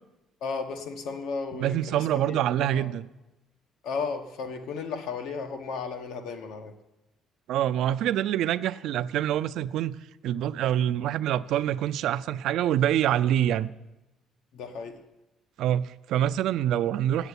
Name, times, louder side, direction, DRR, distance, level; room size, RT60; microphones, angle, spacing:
voice 1, 0.4-2.9 3.8-6.7 14.5-15.0, left 5 dB, 80° left, 6 dB, 1.1 m, -34 dB
voice 2, 1.5-3.1 7.5-10.0 10.2-13.7 15.6-17.3, right 11 dB, 70° right, 14 dB, 0.3 m, -26 dB
8.1 x 8.0 x 8.2 m, 0.98 s
cardioid pair, 165°, 0 cm